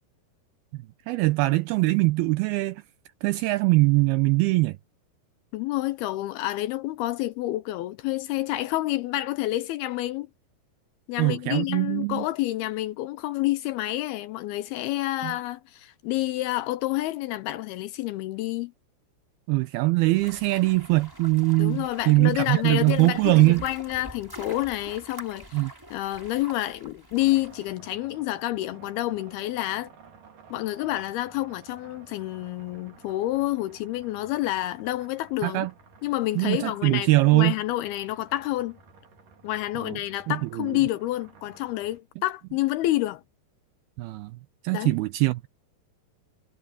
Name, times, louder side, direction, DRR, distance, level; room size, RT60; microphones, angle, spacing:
voice 1, 1.1-2.8 3.2-4.8 11.2-12.3 15.2-15.3 19.5-23.6 25.5-25.7 35.4-35.7 36.4-37.5 39.8-40.0 40.3-40.7 44.0-44.3 44.6-45.5, right 21 dB, 80° right, 2.3 m, -22 dB
voice 2, 5.5-10.3 11.1-18.7 21.6-25.6 25.9-29.9 30.5-35.7 36.0-38.8 39.4-43.2 44.7-45.0, left 16 dB, 80° left, 2.4 m, -29 dB
sound 1, 20.1-27.7, equal, 5° right, 4.6 m, -45 dB
sound 2, 27.2-42.0, right 5 dB, 50° right, 5.0 m, -53 dB
omnidirectional pair, 4.9 m